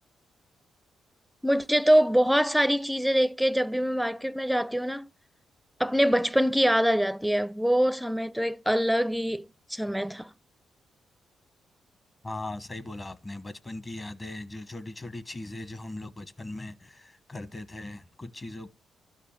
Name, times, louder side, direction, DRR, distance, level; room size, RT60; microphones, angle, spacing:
voice 1, 1.4-5.1 5.8-10.3, equal, ahead, 0.5 m, -24 dB
voice 2, 12.2-18.7, left 2 dB, 30° left, 1.0 m, -39 dB
12.5 x 5.1 x 8.7 m
cardioid pair, 70°, 0 cm